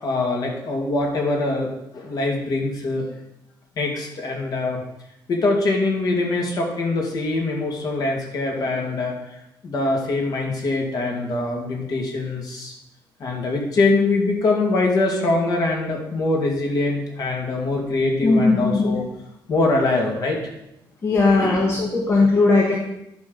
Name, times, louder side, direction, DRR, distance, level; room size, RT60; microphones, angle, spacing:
voice 1, 0.0-3.1 3.8-4.8 5.3-9.1 9.6-12.7 13.2-19.0 19.5-20.4 21.2-21.8, left 2 dB, 50° left, 0 dB, 2.2 m, -23 dB
voice 2, 18.2-18.9 21.0-22.8, left 3 dB, 30° left, -1 dB, 1.2 m, -18 dB
10.5 x 4.1 x 6.4 m, 0.84 s
cardioid pair, 140°, 8 cm